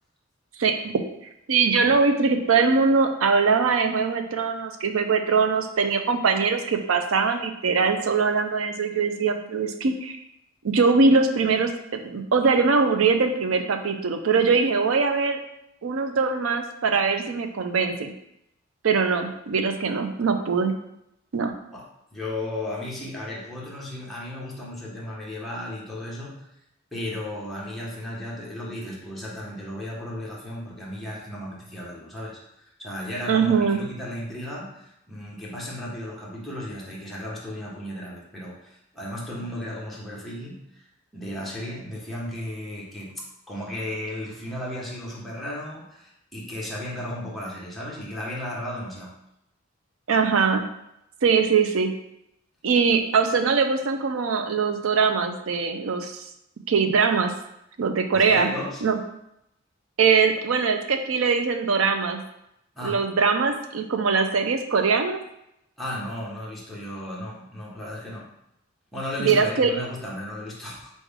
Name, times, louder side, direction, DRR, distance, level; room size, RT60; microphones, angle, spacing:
voice 1, 1.5-10.2 10.6-15.4 15.8-18.1 18.8-20.8 21.3-21.5 33.3-33.8 50.1-50.6 51.2-51.9 52.6-56.2 56.7-57.3 57.8-58.5 58.8-59.0 60.0-62.2 62.8-65.2 69.2-69.7, right 5 dB, 85° right, 7 dB, 0.5 m, -22 dB
voice 2, 21.7-26.5 26.9-40.8 41.1-49.1 58.1-58.8 62.7-63.0 65.8-68.3 68.9-70.9, left 1 dB, ahead, -6 dB, 1.2 m, -35 dB
4.1 x 3.3 x 3.6 m, 0.81 s
head